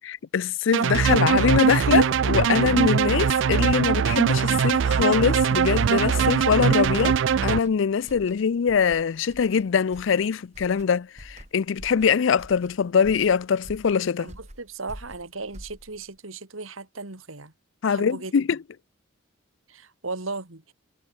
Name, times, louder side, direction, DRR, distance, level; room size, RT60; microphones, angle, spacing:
voice 1, 0.0-7.2 7.4-14.3 17.8-18.6, left 6 dB, 70° left, 0.4 m, -23 dB
sound 1, 0.7-7.6, right 7 dB, 65° right, 0.4 m, -21 dB
sound 2, 5.5-16.2, equal, 35° right, 6.6 m, -47 dB
voice 2, 14.2-17.5 17.9-18.3 19.7-20.7, right 3 dB, 80° right, 2.5 m, -36 dB
head